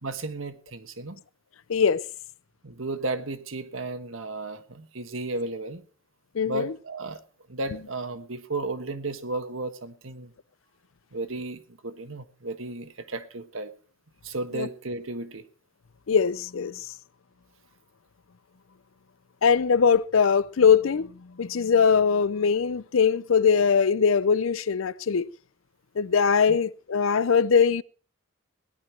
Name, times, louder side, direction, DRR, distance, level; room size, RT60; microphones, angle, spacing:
voice 1, 0.0-1.2 2.6-5.8 6.5-7.2 7.5-10.3 11.1-13.7 14.2-15.4 26.5-26.6, right 2 dB, 75° right, 1.4 m, -34 dB
voice 2, 1.7-2.0 6.4-6.7 14.6-14.7 16.1-16.8 19.4-21.1 21.4-25.3 26.0-27.8, left 6 dB, 75° left, 0.5 m, -21 dB
17.5 x 11.0 x 4.5 m
head